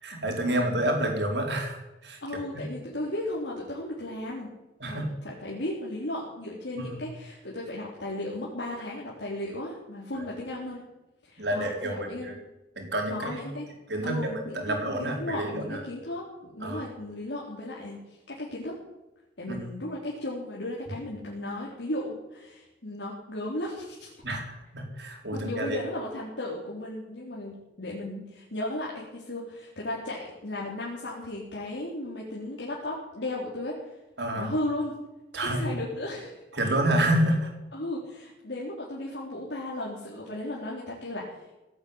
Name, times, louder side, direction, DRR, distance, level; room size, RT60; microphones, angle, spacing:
voice 1, 0.0-2.2 2.5-2.6 4.8-5.1 11.4-12.4 12.8-13.4 13.9-15.8 16.6-16.8 19.5-19.6 24.2-25.8 34.2-34.5 35.3-35.6 36.5-37.5, right 1 dB, 75° right, 2 dB, 4.4 m, -28 dB
voice 2, 2.2-4.5 4.9-10.8 11.2-12.4 13.1-13.7 14.0-18.7 19.4-24.1 25.3-33.9 34.4-35.0 35.4-36.4 37.7-41.3, left 1 dB, 80° left, -4 dB, 3.7 m, -35 dB
17.5 x 8.8 x 8.9 m, 0.99 s
head